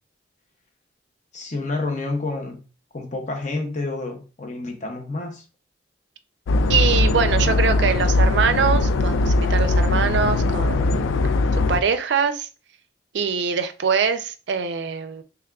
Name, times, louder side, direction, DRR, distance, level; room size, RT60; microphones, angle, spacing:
voice 1, 1.3-2.6 2.9-5.4, left 2 dB, 40° left, 0.7 m, -29 dB
sound 1, 6.5-11.8, left 2 dB, 80° left, 0.3 m, -20 dB
voice 2, 6.7-11.2 11.7-12.5 13.1-15.2, right 6 dB, 60° right, 0.4 m, -23 dB
3.5 x 3.3 x 2.3 m
head